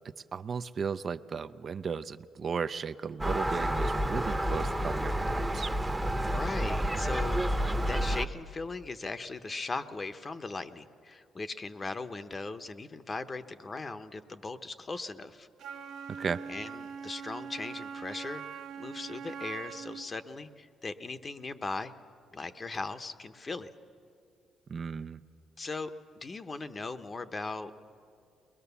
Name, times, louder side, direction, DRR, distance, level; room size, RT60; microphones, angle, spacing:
voice 1, 0.3-5.7 16.1-16.4 24.7-25.2, right 6 dB, 45° right, 12 dB, 0.5 m, -35 dB
Gull seagull, 3.2-8.2, right 1 dB, 10° right, 0.9 m, -29 dB
voice 2, 6.2-15.5 16.5-21.9 22.3-23.7 25.6-25.9 26.2-27.7, left 3 dB, 30° left, 10 dB, 0.9 m, -39 dB
Wind instrument woodwind instrument, 15.6-20.1, right 6 dB, 75° right, 0.9 m, -42 dB
21.5 x 21.5 x 7.0 m, 2.4 s
cardioid pair, 95°, 0 cm